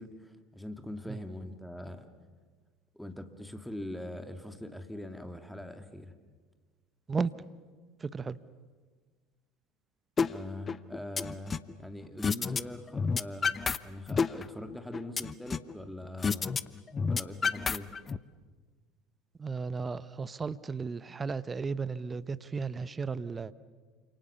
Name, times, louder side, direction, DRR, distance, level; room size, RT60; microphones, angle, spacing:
voice 1, 0.0-2.1 2.9-6.1 10.2-13.5 13.8-16.5 17.0-17.9, left 1 dB, 5° left, 7 dB, 2.4 m, -42 dB
voice 2, 8.0-8.4 19.4-23.5, right 5 dB, 25° right, 16 dB, 1.0 m, -34 dB
sound 1, 10.2-10.3 10.7-11.7 12.2-12.6 12.9-13.8 14.1-15.7 16.2-16.6 16.9-18.2, left 5 dB, 30° left, 0.9 m, -29 dB
29.0 x 27.5 x 7.0 m, 1.4 s
figure-of-eight pair, 70°, 0 cm